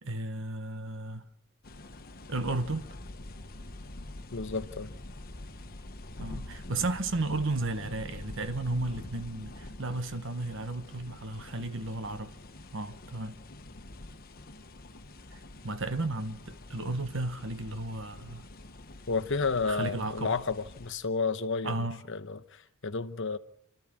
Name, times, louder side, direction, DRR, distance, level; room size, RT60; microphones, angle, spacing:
voice 1, 0.0-1.2 2.3-2.9 6.2-12.3 12.7-13.4 15.3-18.5 19.7-20.4 21.6-22.0, right 2 dB, 65° right, 1.2 m, -34 dB
sound 1, 1.6-20.9, left 2 dB, 45° left, 1.2 m, -46 dB
voice 2, 4.3-5.0 19.1-23.4, left 4 dB, 60° left, 1.0 m, -32 dB
28.0 x 13.5 x 7.5 m
head